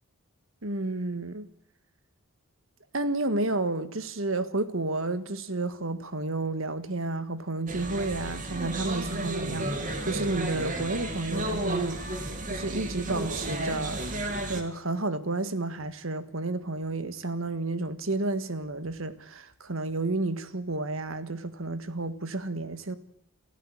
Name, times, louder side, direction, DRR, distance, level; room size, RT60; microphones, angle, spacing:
voice 1, 0.6-1.5 2.9-14.2 14.5-23.0, right 2 dB, 70° right, 1.7 m, -31 dB
sound 1, 7.7-14.6, right 1 dB, 35° right, 2.8 m, -32 dB
28.0 x 14.5 x 8.9 m
head